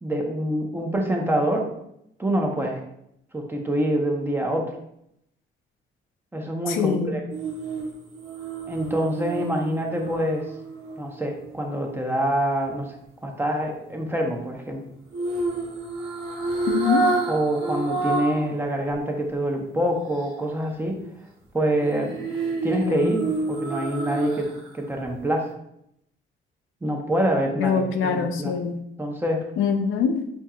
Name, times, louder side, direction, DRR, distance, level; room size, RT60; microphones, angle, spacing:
voice 1, 0.0-1.7 2.2-2.8 3.3-4.7 6.3-7.2 8.7-10.5 11.0-13.0 13.2-14.8 17.3-21.0 21.5-22.3 22.6-25.5 26.8-28.5 29.0-29.5, right 1 dB, 10° right, 1 dB, 0.7 m, -26 dB
voice 2, 6.7-7.2 16.7-17.1 22.8-23.1 27.6-28.8 29.6-30.2, left 6 dB, 85° left, 6 dB, 0.5 m, -24 dB
sound 1, 7.3-11.5 15.1-18.5 18.9-19.0 21.8-24.7 25.0-25.2, right 3 dB, 85° right, 0.8 m, -29 dB
4.4 x 2.8 x 2.4 m, 0.76 s
cardioid pair, 90°, 20 cm